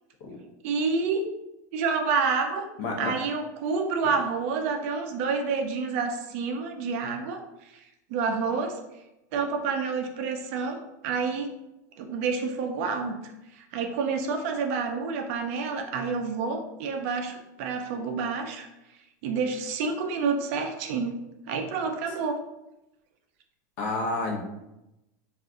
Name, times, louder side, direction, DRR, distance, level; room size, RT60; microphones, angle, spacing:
voice 1, 0.6-1.3 1.7-2.7 3.0-7.4 8.1-8.8 9.3-11.5 12.0-18.7 19.2-21.1 21.5-22.4, right 5 dB, 45° right, 5 dB, 0.4 m, -28 dB
voice 2, 2.8-3.1 4.0-4.1 23.8-24.4, left 3 dB, 55° left, 0 dB, 0.7 m, -30 dB
2.5 x 2.4 x 3.6 m, 0.91 s
supercardioid pair, 170°, 10 cm